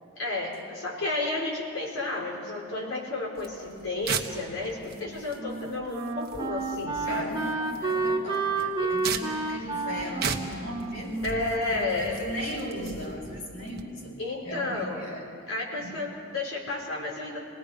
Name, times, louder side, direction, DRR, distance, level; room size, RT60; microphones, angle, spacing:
voice 1, 0.2-7.4 8.8-8.9 11.2-12.2 14.2-15.0 15.5-17.4, left 2 dB, 90° left, -2 dB, 4.7 m, -32 dB
sound 1, 3.4-13.8, right 6 dB, 50° right, 1.2 m, -38 dB
Wind instrument woodwind instrument, 4.9-12.2, right 3 dB, 25° right, 1.3 m, -31 dB
voice 2, 7.0-11.4 11.7-14.1 14.4-15.3 15.8-15.9, equal, 70° left, -3 dB, 6.7 m, -37 dB
28.0 x 19.0 x 5.1 m, 2.3 s
head